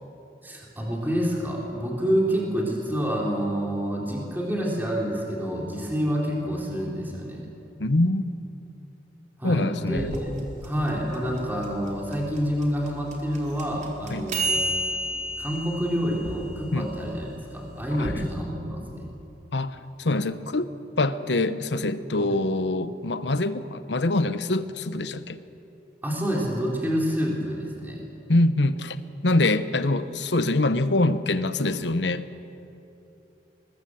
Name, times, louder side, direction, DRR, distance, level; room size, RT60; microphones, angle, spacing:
voice 1, 0.4-7.5 9.4-10.3 10.6-14.6 15.4-19.1 22.2-22.4 26.0-28.1, equal, 10° right, -3 dB, 3.6 m, -28 dB
voice 2, 7.8-8.3 9.4-10.1 14.1-14.3 16.7-16.9 18.0-18.3 19.5-20.7 21.0-25.4 28.3-29.0 29.2-32.2, left 2 dB, 75° left, 12 dB, 1.0 m, -24 dB
sound 1, 10.0-18.1, right 1 dB, 40° right, 3.6 m, -32 dB
25.0 x 20.5 x 7.8 m, 2.8 s
head